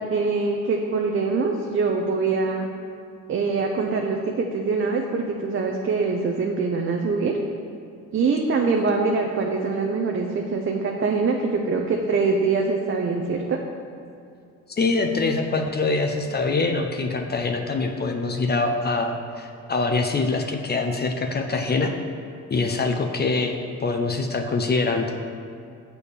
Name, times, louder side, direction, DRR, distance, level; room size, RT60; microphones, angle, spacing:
voice 1, 0.1-2.7 3.3-7.4 8.1-13.6, right 4 dB, 45° right, 1 dB, 0.7 m, -24 dB
voice 2, 14.7-21.9 22.5-25.1, left 3 dB, 35° left, 4 dB, 0.7 m, -24 dB
7.0 x 4.6 x 6.7 m, 2.5 s
cardioid pair, 90°, 30 cm